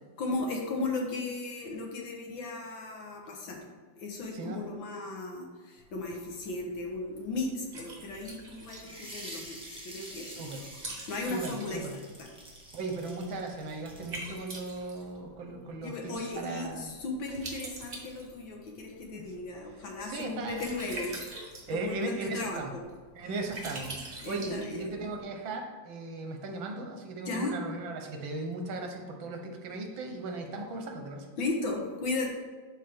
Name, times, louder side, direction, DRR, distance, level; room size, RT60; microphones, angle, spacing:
voice 1, 0.2-3.7 4.0-10.4 11.1-12.3 15.8-21.2 21.7-22.8 24.2-24.9 27.3-27.5 31.4-32.3, left 3 dB, 75° left, 0 dB, 2.1 m, -36 dB
Liquid, 5.8-25.2, right 2 dB, 35° right, 1.5 m, -46 dB
sound 1, 8.8-14.3, right 1 dB, 5° right, 1.4 m, -47 dB
voice 2, 10.3-10.7 11.3-11.9 12.7-16.9 19.1-19.2 20.0-20.7 21.7-22.8 23.2-31.3, right 2 dB, 75° right, 3 dB, 1.8 m, -37 dB
11.0 x 4.6 x 3.6 m, 1.5 s
omnidirectional pair, 2.1 m